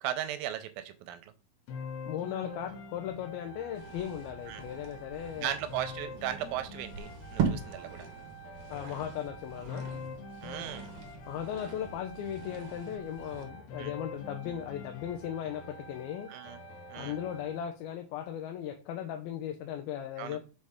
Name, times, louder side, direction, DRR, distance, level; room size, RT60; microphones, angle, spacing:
voice 1, 0.0-1.2 4.5-4.6 5.4-8.1 10.4-10.9 13.8-13.9 16.3-16.6 16.9-17.2 20.2-20.4, right 11 dB, 85° right, 2.3 m, -37 dB
sound 1, 1.7-17.7, left 2 dB, 75° left, 1.5 m, -46 dB
voice 2, 2.1-5.6 8.7-9.9 11.3-16.3 17.0-20.4, left 10 dB, 90° left, 2.6 m, -37 dB
sound 2, 3.7-13.5, right 6 dB, 70° right, 1.4 m, -40 dB
6.4 x 5.0 x 3.5 m
omnidirectional pair, 4.2 m